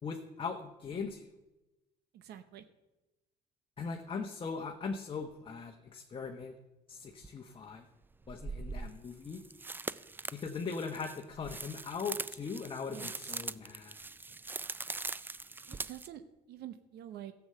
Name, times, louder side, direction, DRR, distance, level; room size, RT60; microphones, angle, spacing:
voice 1, 0.0-1.3 3.8-6.5 6.9-7.8 8.3-9.4 10.3-14.0, left 5 dB, 30° left, 3 dB, 1.1 m, -40 dB
voice 2, 2.1-2.6 12.9-13.4 15.7-16.2 16.5-17.3, right 11 dB, 75° right, 10 dB, 0.9 m, -47 dB
sound 1, 7.2-7.3 8.2-16.1, right 3 dB, 10° right, 0.3 m, -42 dB
13.0 x 7.1 x 7.7 m, 1.0 s
cardioid pair, 110°, 17 cm